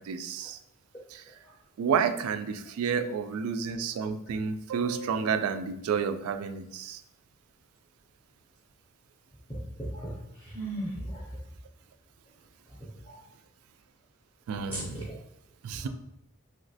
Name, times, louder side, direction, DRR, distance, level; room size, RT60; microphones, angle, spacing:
voice 1, 0.1-0.6 1.1-1.2 1.8-7.0 14.5-15.0 15.6-15.9, right 6 dB, 80° right, 10 dB, 0.3 m, -30 dB
voice 2, 9.9-11.2 13.0-13.2 14.7-15.1 15.8-15.9, right 1 dB, 10° left, -6 dB, 0.5 m, -37 dB
3.0 x 2.8 x 2.7 m, 0.80 s
head